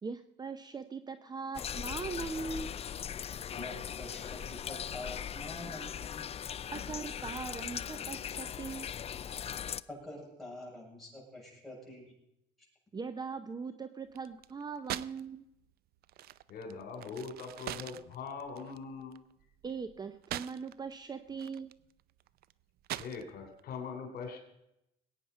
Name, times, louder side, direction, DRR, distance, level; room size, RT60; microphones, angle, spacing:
voice 1, 0.0-2.7 6.7-8.9 12.9-15.4 19.6-21.7, right 5 dB, 25° right, 10 dB, 0.7 m, -40 dB
sound 1, 1.5-9.8, left 8 dB, 35° left, 0.5 m, -39 dB
voice 2, 3.5-6.2 9.9-12.1, left 1 dB, ahead, -4 dB, 7.3 m, -46 dB
sound 2, 14.1-15.3 15.5-20.9 21.3-23.6, right 13 dB, 65° right, 0.5 m, -43 dB
voice 3, 16.5-19.1 23.0-24.4, left 5 dB, 65° left, 5 dB, 3.2 m, -42 dB
20.5 x 9.1 x 5.6 m, 0.83 s
cardioid pair, 110°, 17 cm